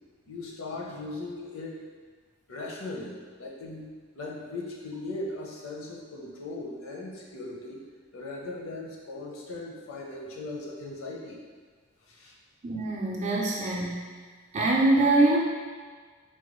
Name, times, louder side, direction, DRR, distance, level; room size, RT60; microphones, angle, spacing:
voice 1, 0.3-1.9 2.5-3.9 4.2-7.8 8.1-11.4 12.0-12.3, left 2 dB, 75° left, -2 dB, 0.6 m, -38 dB
voice 2, 12.6-14.2 14.5-15.4, right 2 dB, 35° right, -3 dB, 0.5 m, -24 dB
3.9 x 2.2 x 3.0 m, 1.5 s
head